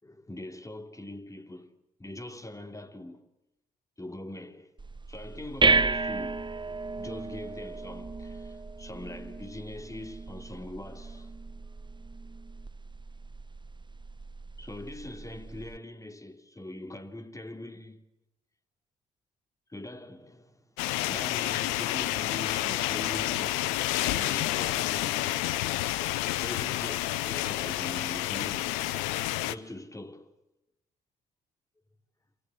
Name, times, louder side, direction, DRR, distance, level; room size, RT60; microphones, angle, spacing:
voice 1, 0.0-1.7 2.0-3.3 4.0-4.7 5.1-6.5 7.0-11.3 14.6-18.0 19.7-20.7 21.0-23.8 24.1-25.5 26.4-28.8 29.4-30.3, left 1 dB, 15° left, 3.2 m, -42 dB
sound 1, 4.8-15.8, right 3 dB, 25° right, 1.4 m, -33 dB
sound 2, 20.8-29.6, left 15 dB, 80° left, 0.9 m, -29 dB
27.5 x 25.5 x 8.1 m
hypercardioid pair, 45°, 20 cm